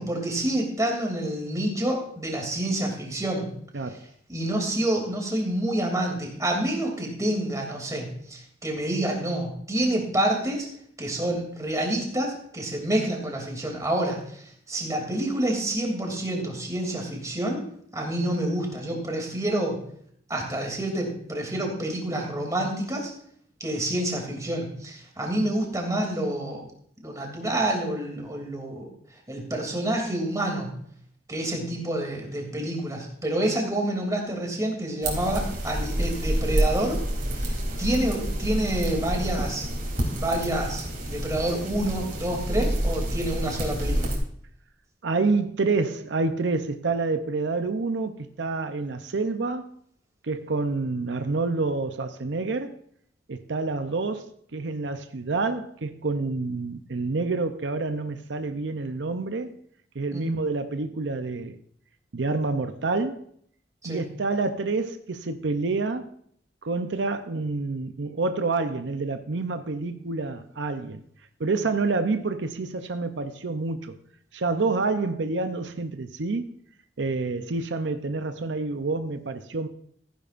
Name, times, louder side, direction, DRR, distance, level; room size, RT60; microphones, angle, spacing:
voice 1, 0.0-3.5 4.3-10.7 11.0-14.2 14.7-17.6 17.9-19.8 20.3-23.1 23.6-26.7 27.0-28.9 29.3-30.7 31.3-37.0 37.4-37.5 37.8-39.6 40.1-44.1 60.1-60.2 63.8-64.0, right 1 dB, 20° right, 2.8 m, -28 dB
voice 2, 3.7-4.0 45.0-49.7 50.2-52.8 53.3-59.5 59.9-61.6 62.1-63.3 63.8-66.1 66.6-71.0 71.4-74.0 74.3-76.5 77.0-79.7, right 3 dB, 90° right, 0.7 m, -28 dB
sound 1, 35.0-44.2, right 1 dB, 50° right, 3.3 m, -28 dB
15.0 x 10.5 x 2.5 m
head